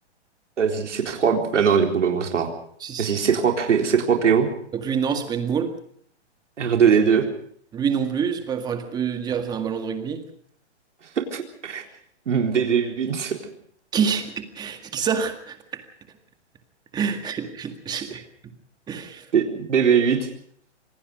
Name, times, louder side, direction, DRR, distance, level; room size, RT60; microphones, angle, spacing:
voice 1, 0.6-2.5 3.0-4.5 6.6-7.3 11.3-11.8 12.3-13.3 19.3-20.3, right 7 dB, 85° right, 3 dB, 4.1 m, -21 dB
voice 2, 4.7-5.7 7.7-10.2 13.9-15.6 16.9-18.2 18.9-19.3, right 7 dB, 10° right, 7 dB, 1.9 m, -26 dB
26.5 x 19.0 x 5.3 m, 0.62 s
hypercardioid pair, 160°, 35 cm